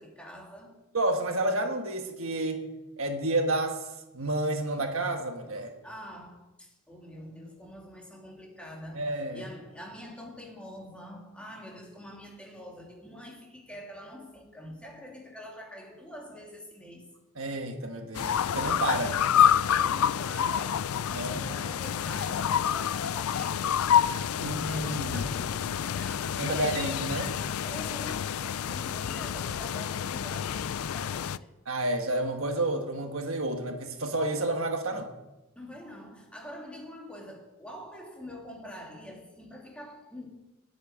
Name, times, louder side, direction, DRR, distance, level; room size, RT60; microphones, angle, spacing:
voice 1, 0.0-0.8 5.8-9.1 9.3-17.1 19.8-23.8 24.3-26.8 27.6-31.3 35.5-40.3, equal, 5° left, -1 dB, 2.7 m, -45 dB
voice 2, 0.9-2.7 3.0-3.9 4.1-5.7 8.9-9.4 17.4-19.2 21.1-21.6 24.4-25.2 26.4-27.4 31.7-35.1, right 2 dB, 70° right, 5 dB, 1.5 m, -30 dB
sound 1, 18.1-31.4, left 9 dB, 80° left, 0.4 m, -28 dB
10.5 x 7.9 x 9.5 m, 0.98 s
head